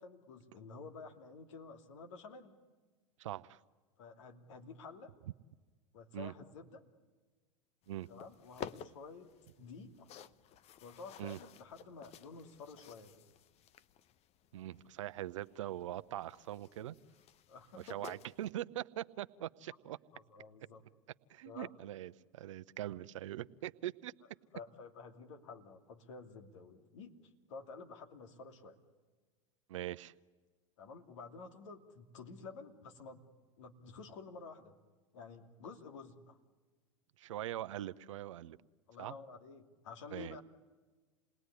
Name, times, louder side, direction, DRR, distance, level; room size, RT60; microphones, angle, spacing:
voice 1, 0.0-2.6 4.0-5.1 5.9-6.9 8.1-10.1 10.8-13.2 17.5-18.0 20.1-20.8 21.4-21.7 24.5-28.8 30.8-33.2 33.6-34.7 35.1-36.4 38.9-40.4, left 4 dB, 70° left, 5 dB, 2.7 m, -51 dB
voice 2, 3.2-3.6 6.1-6.3 7.9-8.1 11.2-11.4 14.5-16.9 17.8-20.0 21.3-24.1 29.7-30.1 37.2-38.6 39.0-39.2 40.1-40.4, right 13 dB, 75° right, 14 dB, 0.8 m, -42 dB
sound 1, 7.8-18.5, left 9 dB, 40° left, 0.9 m, -53 dB
28.5 x 20.0 x 9.8 m, 1.3 s
hypercardioid pair, 90°, 16 cm